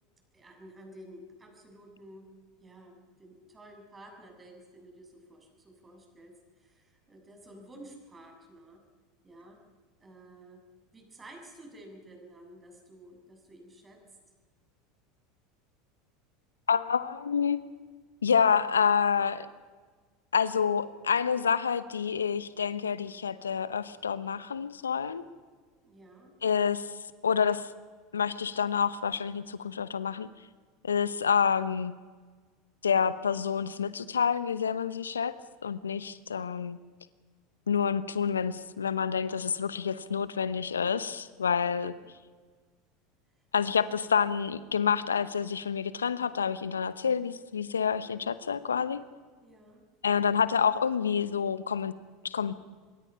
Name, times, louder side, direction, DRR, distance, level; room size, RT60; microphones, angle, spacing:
voice 1, 0.3-2.3 2.6-8.8 9.2-9.6 10.0-10.6 10.9-14.0 25.8-26.3 41.9-42.2 49.4-49.9, right 1 dB, 20° right, 3 dB, 7.2 m, -52 dB
voice 2, 16.7-17.6 18.2-19.5 20.3-25.2 26.4-26.9 27.2-27.7 28.1-30.3 30.8-31.9 32.8-35.3 35.6-36.8 37.7-41.9 43.5-49.0 50.0-51.9 52.2-52.6, left 7 dB, 85° left, 15 dB, 0.8 m, -28 dB
26.0 x 23.0 x 5.7 m, 1.5 s
figure-of-eight pair, 80°, 0 cm